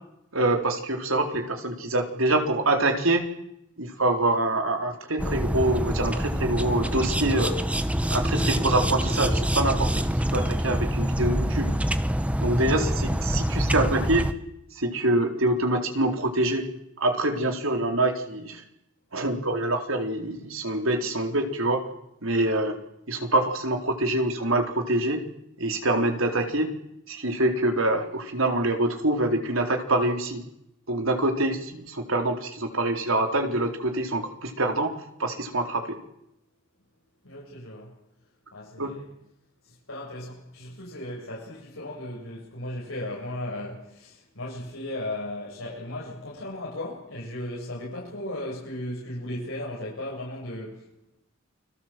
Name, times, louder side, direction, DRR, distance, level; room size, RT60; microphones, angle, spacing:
voice 1, 0.3-3.3 3.8-7.6 8.1-10.0 10.3-11.7 12.4-14.3 14.8-16.7 17.0-18.6 19.1-21.8 22.2-22.8 23.1-25.2 25.6-26.7 27.1-30.4 30.9-34.9 35.2-36.0 38.8-38.9, right 2 dB, 80° right, 4.1 m, -25 dB
sound 1, 5.2-14.3, equal, 5° right, 1.1 m, -26 dB
voice 2, 37.2-37.9 38.5-39.1 39.6-50.9, left 1 dB, 80° left, 7.9 m, -36 dB
29.5 x 21.5 x 7.8 m
head